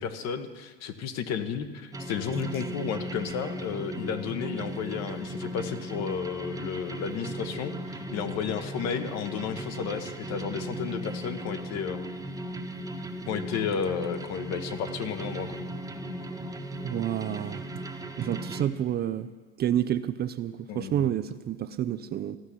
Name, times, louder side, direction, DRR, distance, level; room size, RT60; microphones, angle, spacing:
voice 1, 0.0-12.0 13.3-15.6 20.7-21.1, left 7 dB, 50° left, 9 dB, 1.2 m, -33 dB
sound 1, 1.9-18.6, right 1 dB, 10° right, 1.1 m, -37 dB
voice 2, 16.8-17.7 18.2-19.3 19.6-22.4, right 11 dB, 30° right, 12 dB, 0.4 m, -29 dB
14.5 x 5.9 x 9.9 m, 1.4 s
supercardioid pair, 100°, 32 cm